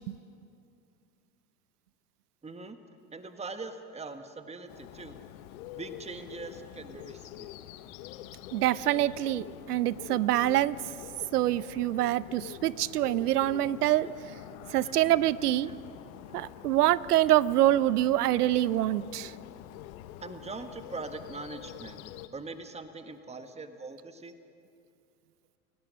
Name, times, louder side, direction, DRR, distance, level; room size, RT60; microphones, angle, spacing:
voice 1, 2.4-2.8 3.1-5.2 5.7-7.5 14.8-14.9 15.6-15.8 16.3-16.7 20.2-22.0 22.3-24.3, right 3 dB, 15° right, 8 dB, 1.6 m, -42 dB
Bird, 4.7-22.3, left 12 dB, 65° left, 1.3 m, -46 dB
voice 2, 8.5-10.8 11.3-14.1 14.7-15.7 16.3-19.3, right 14 dB, 85° right, 19 dB, 0.8 m, -25 dB
29.5 x 18.0 x 6.5 m, 2.5 s
hypercardioid pair, 90°, 45 cm